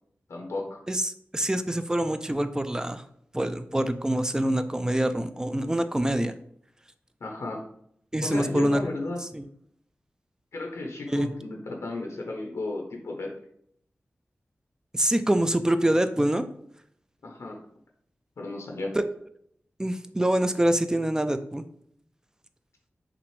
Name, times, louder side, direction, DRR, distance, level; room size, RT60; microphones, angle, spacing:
voice 1, 0.3-0.8 7.2-7.6 8.2-9.2 10.5-13.3 17.2-17.6 18.4-18.9, left 2 dB, 90° left, 1 dB, 0.8 m, -33 dB
voice 2, 0.9-3.0 3.3-6.3 8.1-8.8 9.2-9.5 11.1-11.3 14.9-16.5 18.9-19.1 19.8-21.6, right 1 dB, 15° right, 9 dB, 0.3 m, -25 dB
5.9 x 2.5 x 3.2 m, 0.69 s
wide cardioid pair, 85°, 5 cm